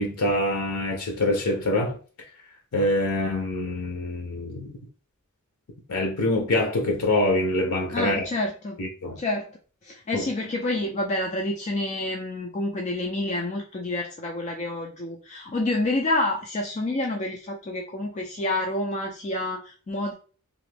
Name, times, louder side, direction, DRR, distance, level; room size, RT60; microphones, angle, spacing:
voice 1, 0.0-2.0 2.7-4.7 5.9-8.2 8.8-9.2 10.1-10.2, left 1 dB, 90° left, 0.6 m, -25 dB
voice 2, 7.9-8.8 9.2-9.5 9.8-20.1, left 2 dB, 30° left, 0.4 m, -28 dB
2.8 x 2.5 x 3.2 m
head